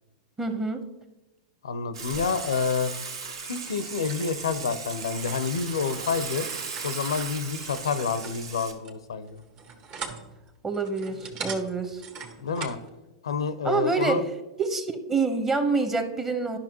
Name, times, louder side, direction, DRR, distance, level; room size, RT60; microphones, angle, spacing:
voice 1, 0.4-0.8 10.6-12.0 13.6-14.2 14.6-16.6, right 4 dB, 15° right, 7 dB, 1.0 m, -26 dB
voice 2, 1.6-2.9 3.4-6.5 6.8-9.4 12.4-12.8 13.2-14.2, left 5 dB, 80° left, 12 dB, 0.7 m, -28 dB
Water / Water tap faucet / Sink (filling or washing), 1.9-8.7, right 5 dB, 70° right, 1.1 m, -37 dB
sound 1, 5.0-12.9, right 5 dB, 40° right, 1.2 m, -42 dB
11.5 x 5.8 x 2.9 m, 1.1 s
hypercardioid pair, 110°, 3 cm